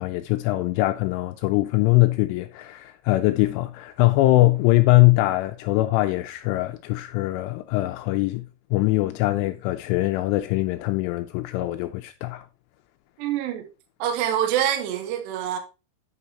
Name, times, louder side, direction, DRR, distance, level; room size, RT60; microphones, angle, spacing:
voice 1, 0.0-8.5 8.7-12.4, left 19 dB, 85° left, 2.9 m, -22 dB
voice 2, 13.2-13.7 14.0-15.6, right 10 dB, 75° right, 2.8 m, -25 dB
9.1 x 4.8 x 4.1 m
omnidirectional pair, 5.9 m